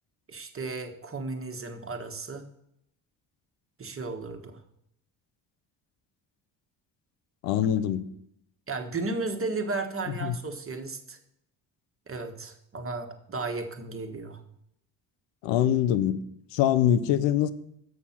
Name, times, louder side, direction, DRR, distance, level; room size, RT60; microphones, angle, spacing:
voice 1, 0.3-2.4 3.8-4.6 8.7-11.2 12.1-14.4, right 3 dB, 30° right, 1.4 m, -34 dB
voice 2, 7.4-8.1 10.2-10.3 15.4-16.2 16.5-17.5, left 10 dB, 90° left, 0.7 m, -23 dB
7.0 x 6.6 x 5.8 m
cardioid pair, 80°, 43 cm